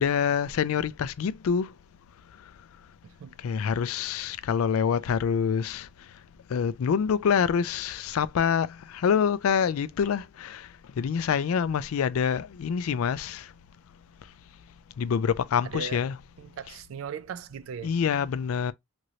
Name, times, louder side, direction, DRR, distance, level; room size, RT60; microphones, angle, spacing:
voice 1, 0.0-1.7 2.3-2.4 3.4-6.2 6.5-13.5 14.2-14.3 15.0-16.2 16.7-16.8 17.8-18.7, left 7 dB, 90° left, 0.4 m, -26 dB
voice 2, 3.0-3.3 15.7-16.0 16.4-17.9, right 7 dB, 75° right, 0.3 m, -38 dB
3.0 x 2.5 x 2.8 m
head